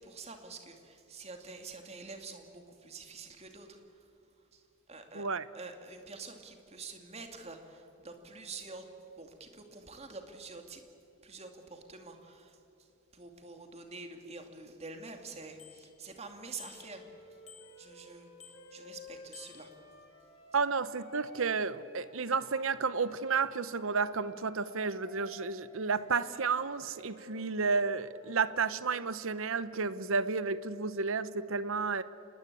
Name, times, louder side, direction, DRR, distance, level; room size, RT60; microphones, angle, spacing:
voice 1, 0.0-4.0 4.5-4.6 4.9-5.3 5.5-8.8 9.2-10.8 11.2-12.6 13.1-17.4 17.8-18.3 18.7-19.7, right 3 dB, 30° right, 5 dB, 2.3 m, -47 dB
voice 2, 5.1-5.5 20.5-32.0, right 4 dB, 65° right, 15 dB, 0.8 m, -32 dB
Bicycle bell, 15.6-16.2 16.6-17.1 17.5-18.1 18.4-18.9 19.3-20.1, left 8 dB, 35° left, 2.9 m, -55 dB
Wind instrument woodwind instrument, 16.7-22.5 22.9-28.6, left 2 dB, 65° left, 5.7 m, -55 dB
26.5 x 20.5 x 8.5 m, 2.7 s
head